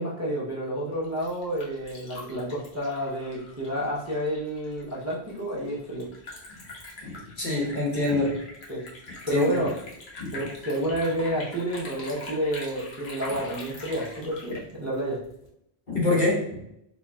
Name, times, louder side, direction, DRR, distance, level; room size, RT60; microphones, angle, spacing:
voice 1, 0.0-6.1 8.7-8.8 9.3-9.7 10.3-15.2, equal, 15° right, -6 dB, 0.6 m, -30 dB
Liquid, 0.9-15.5, left 2 dB, 75° left, 1.2 m, -44 dB
voice 2, 7.0-8.4 9.3-9.7 10.2-10.4 15.9-16.6, left 2 dB, 50° left, -3 dB, 1.2 m, -26 dB
4.2 x 3.1 x 2.3 m, 0.77 s
omnidirectional pair, 1.1 m